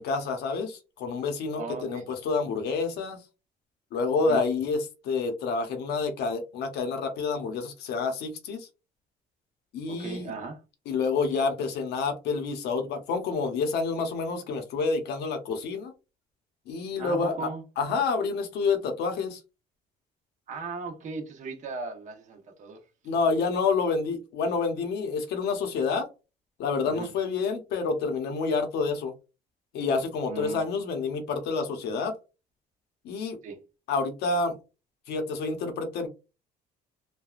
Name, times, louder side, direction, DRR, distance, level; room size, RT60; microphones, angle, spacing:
voice 1, 0.0-3.2 3.9-8.7 9.7-10.3 10.9-15.9 16.7-17.5 17.8-19.4 23.0-26.1 26.6-29.1 29.7-32.1 33.0-33.4 33.9-34.6 35.1-36.1, left 4 dB, 80° left, 0.8 m, -28 dB
voice 2, 1.6-2.1 4.3-4.4 9.9-10.6 17.0-17.6 20.5-22.8 26.9-27.1 30.3-30.7 33.4-33.6, right 4 dB, 45° right, 0.9 m, -37 dB
3.3 x 2.2 x 2.3 m
cardioid pair, 110°, 17 cm